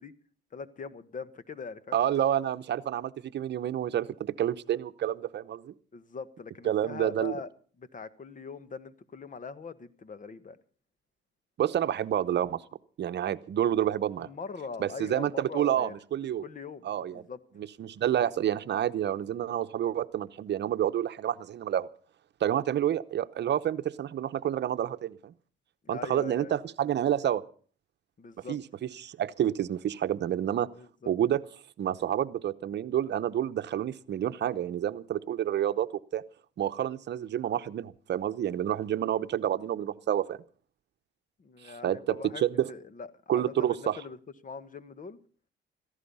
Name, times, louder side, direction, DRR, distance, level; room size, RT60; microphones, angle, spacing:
voice 1, 0.5-2.0 5.9-7.5 7.8-10.6 14.2-15.9 16.4-17.4 25.8-26.6 28.2-28.6 30.8-31.1 39.0-39.2 41.4-42.4 42.7-44.2 44.4-45.2, left 5 dB, 40° left, 14 dB, 1.4 m, -42 dB
voice 2, 1.9-5.7 6.6-7.3 11.6-12.6 13.0-14.3 14.8-16.4 16.8-17.2 17.8-21.9 22.4-25.3 25.9-27.4 28.5-28.6 29.0-30.7 31.1-31.4 31.8-36.2 36.6-40.4 41.6-42.7 43.3-44.0, right 10 dB, 60° right, 12 dB, 0.9 m, -29 dB
16.5 x 15.0 x 5.5 m, 0.43 s
cardioid pair, 90°, 20 cm